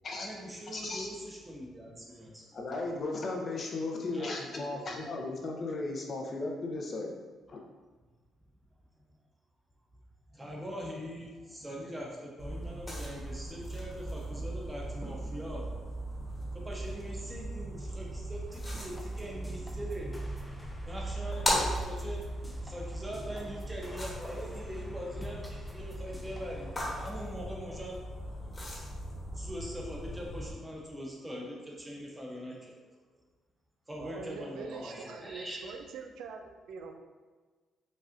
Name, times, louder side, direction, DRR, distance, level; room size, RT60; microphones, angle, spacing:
voice 1, 0.1-2.6 4.1-5.0 10.3-16.2 16.5-28.3 29.3-32.8 33.9-35.9, equal, 15° right, -2 dB, 1.0 m, -42 dB
voice 2, 0.7-1.1 2.5-7.1 7.5-7.6, left 2 dB, 50° left, 1 dB, 0.6 m, -35 dB
sound 1, 12.4-30.5, equal, 25° left, 1.2 m, -38 dB
sound 2, 18.5-27.3, left 1 dB, 5° left, 0.5 m, -53 dB
voice 3, 34.0-36.9, right 5 dB, 80° right, 4 dB, 0.4 m, -43 dB
5.3 x 2.4 x 2.6 m, 1.4 s
cardioid pair, 90°, 0 cm